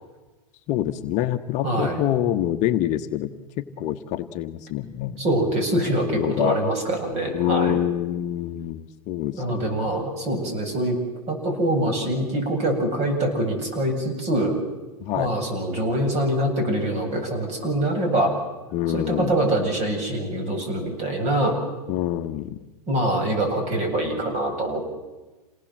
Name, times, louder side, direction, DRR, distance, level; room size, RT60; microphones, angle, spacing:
voice 1, 0.7-5.2 6.1-6.6 7.3-9.9 15.0-15.4 18.7-19.4 21.9-22.7, left 12 dB, 35° left, 6 dB, 1.2 m, -26 dB
voice 2, 1.6-2.0 5.2-7.8 9.3-11.0 11.3-14.6 15.1-18.3 18.9-21.6 22.9-24.9, right 1 dB, 35° right, 4 dB, 7.9 m, -24 dB
28.0 x 19.0 x 7.6 m, 1.2 s
hypercardioid pair, 130°, 20 cm